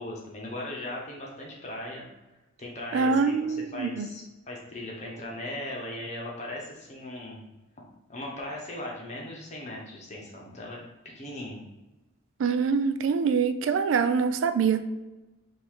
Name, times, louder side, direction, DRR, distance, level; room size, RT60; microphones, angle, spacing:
voice 1, 0.0-2.1 2.6-7.4 8.1-10.8 11.1-11.6, left 1 dB, 35° left, -2 dB, 0.9 m, -38 dB
voice 2, 2.9-4.1 12.4-14.9, right 5 dB, 70° right, 10 dB, 0.3 m, -25 dB
3.7 x 2.6 x 4.7 m, 1.1 s
head